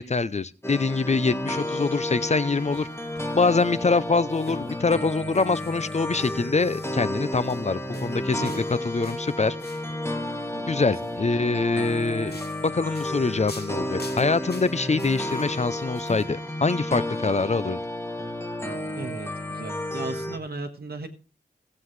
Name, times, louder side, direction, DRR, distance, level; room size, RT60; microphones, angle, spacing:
voice 1, 0.0-2.9 3.3-9.6 10.7-12.4 12.6-17.8, left 4 dB, 35° left, 0.5 m, -24 dB
sound 1, 0.6-20.4, left 1 dB, 15° left, 1.6 m, -32 dB
sound 2, 2.5-10.0 10.8-11.2 11.7-16.2, left 3 dB, 60° left, 2.6 m, -47 dB
voice 2, 18.9-21.1, right 3 dB, 55° right, 1.3 m, -36 dB
17.5 x 7.6 x 3.2 m
wide cardioid pair, 60°, 19 cm